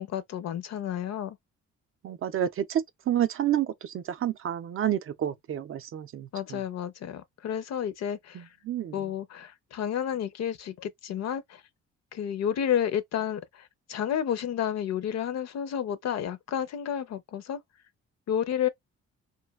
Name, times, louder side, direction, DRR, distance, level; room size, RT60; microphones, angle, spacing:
voice 1, 0.0-1.4 6.3-8.5 8.9-11.6 12.1-17.6 18.3-18.7, left 9 dB, 60° left, 0.6 m, -31 dB
voice 2, 2.0-6.6 8.3-9.0, right 11 dB, 45° right, 0.4 m, -29 dB
3.1 x 2.2 x 2.2 m
cardioid pair, 90°, 30 cm